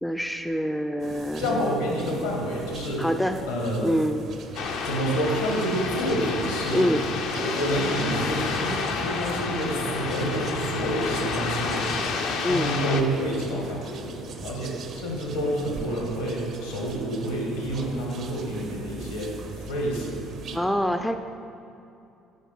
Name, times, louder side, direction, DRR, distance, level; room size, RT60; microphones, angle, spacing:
voice 1, 0.0-1.7 3.0-3.4 3.8-4.2 6.7-7.1 12.4-12.7 20.5-21.2, equal, 5° left, 7 dB, 0.4 m, -25 dB
sound 1, 1.0-20.6, right 4 dB, 50° right, 0.6 m, -42 dB
sound 2, 1.3-20.2, right 2 dB, 70° right, 1.0 m, -47 dB
voice 2, 1.4-3.0 3.5-4.0 4.8-6.9 7.3-12.1 12.4-20.2, equal, 80° left, -2 dB, 1.7 m, -28 dB
sound 3, 4.5-13.0, left 5 dB, 60° left, 0.5 m, -30 dB
6.4 x 5.0 x 5.8 m, 2.7 s
figure-of-eight pair, 55°, 0 cm